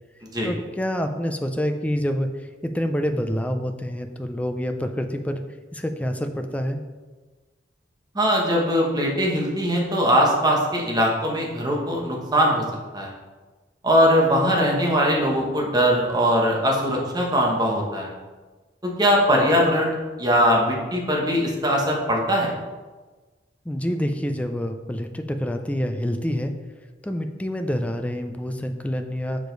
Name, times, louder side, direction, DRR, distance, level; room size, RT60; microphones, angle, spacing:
voice 1, 0.4-2.3 2.6-5.4 5.7-6.8 23.7-26.5 27.0-29.5, equal, 10° left, 6 dB, 0.4 m, -27 dB
voice 2, 8.1-12.6 12.9-13.1 13.8-18.1 18.8-19.9 20.2-22.5, equal, 20° right, -1 dB, 1.2 m, -21 dB
6.5 x 4.9 x 4.0 m, 1.3 s
head